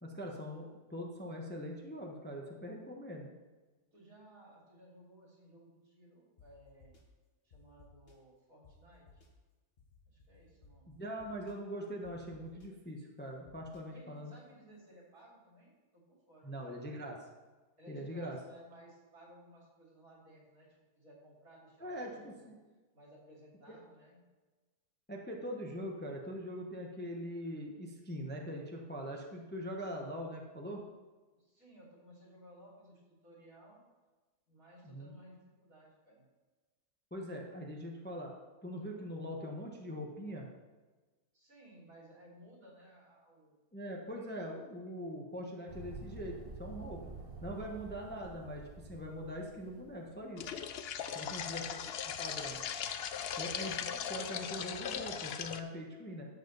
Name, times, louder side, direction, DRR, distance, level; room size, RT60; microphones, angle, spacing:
voice 1, 0.0-3.3 10.9-14.3 16.4-17.2 17.9-18.4 21.8-22.6 23.7-23.8 25.1-30.8 34.8-35.1 37.1-38.3 38.6-40.5 43.7-47.0 47.4-50.5 51.1-51.9 52.2-52.6 53.4-56.3, equal, 10° left, 0 dB, 0.9 m, -42 dB
voice 2, 3.9-7.0 7.4-9.2 10.1-10.9 13.9-16.6 17.8-22.5 22.9-24.2 31.3-33.8 34.5-36.3 41.3-44.3 47.6-47.7 51.1-51.6, right 1 dB, 65° right, -4 dB, 3.5 m, -58 dB
sound 1, 6.4-6.5 6.8-7.0 7.5-8.1 8.6-8.7 9.1-9.3 9.8-10.7 11.2-11.5 12.0-12.7 13.4-13.8, left 5 dB, 40° left, 1.4 m, -60 dB
sound 2, 45.7-50.2, right 4 dB, 40° right, 1.2 m, -49 dB
sound 3, 50.4-55.6, left 8 dB, 65° left, 0.6 m, -39 dB
12.0 x 7.7 x 4.0 m, 1.3 s
omnidirectional pair, 1.6 m